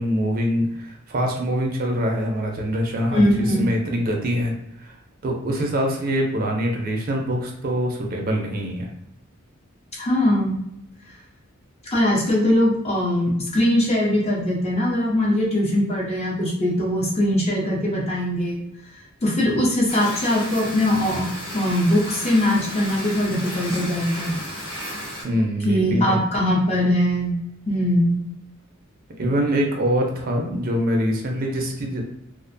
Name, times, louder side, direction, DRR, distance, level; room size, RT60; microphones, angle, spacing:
voice 1, 0.0-4.5 4.8-4.9 5.2-8.9 25.2-26.2 29.2-32.0, equal, 45° right, 1 dB, 0.5 m, -24 dB
voice 2, 3.1-3.7 10.0-10.5 11.9-18.6 19.2-21.3 21.5-24.3 25.6-27.3 27.7-28.2, left 1 dB, 30° left, -3 dB, 0.7 m, -21 dB
sound 1, 19.9-25.2, equal, 75° left, 1.1 m, -33 dB
2.4 x 2.1 x 2.5 m, 0.78 s
head